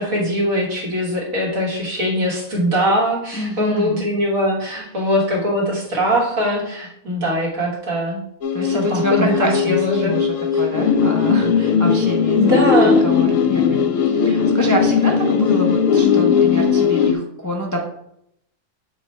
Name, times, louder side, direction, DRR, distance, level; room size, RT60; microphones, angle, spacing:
voice 1, 0.0-8.2 8.7-10.1 12.3-13.0, equal, 70° right, -3 dB, 2.2 m, -21 dB
voice 2, 3.3-4.1 8.5-17.8, left 1 dB, 20° left, 0 dB, 0.4 m, -26 dB
sound 1, 8.4-17.1, left 6 dB, 70° left, 0.9 m, -18 dB
6.9 x 3.1 x 4.3 m, 0.74 s
omnidirectional pair, 1.5 m